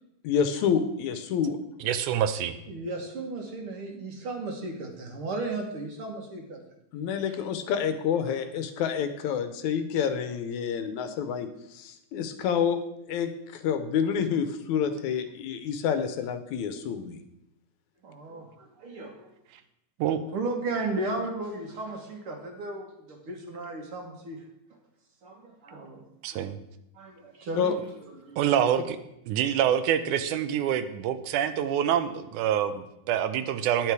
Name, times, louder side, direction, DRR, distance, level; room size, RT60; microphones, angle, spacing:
voice 1, 0.2-1.6 6.9-12.8 13.1-17.2 27.6-27.8, left 7 dB, 75° left, 9 dB, 2.0 m, -28 dB
voice 2, 1.8-2.5 20.0-20.2 26.2-26.6 28.4-29.0 29.3-33.9, right 10 dB, 80° right, 11 dB, 2.1 m, -26 dB
voice 3, 2.7-6.6 18.0-19.3 20.3-24.4 25.2-26.0 27.0-27.7 28.2-28.4, right 2 dB, 50° right, 2 dB, 2.1 m, -35 dB
10.5 x 9.0 x 4.7 m, 0.84 s
omnidirectional pair, 3.5 m